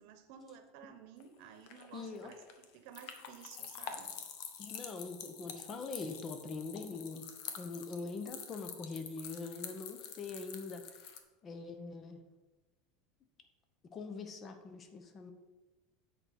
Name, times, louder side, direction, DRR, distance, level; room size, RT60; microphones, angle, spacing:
voice 1, 0.0-4.1, right 7 dB, 65° right, 8 dB, 1.0 m, -54 dB
sound 1, 1.2-11.2, left 7 dB, 60° left, 1.0 m, -47 dB
voice 2, 1.9-2.3 4.6-7.2 7.6-11.0 11.4-12.2 13.9-15.3, left 4 dB, 30° left, 7 dB, 0.9 m, -43 dB
7.8 x 4.4 x 6.3 m, 1.2 s
supercardioid pair, 135°, 0 cm